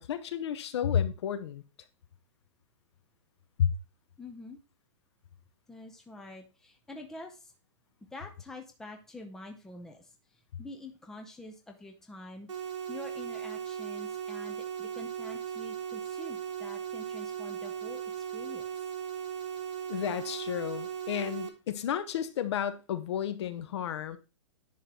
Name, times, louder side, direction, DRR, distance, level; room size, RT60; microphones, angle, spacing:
voice 1, 0.0-1.6 3.6-3.7 19.9-24.2, left 9 dB, 60° left, 0.8 m, -32 dB
voice 2, 4.2-4.6 5.7-7.5 8.1-12.5 12.9-18.7, left 2 dB, 5° left, 0.6 m, -47 dB
sound 1, 12.5-21.5, right 8 dB, 70° right, 1.5 m, -37 dB
10.5 x 3.8 x 4.3 m
hypercardioid pair, 160°, 16 cm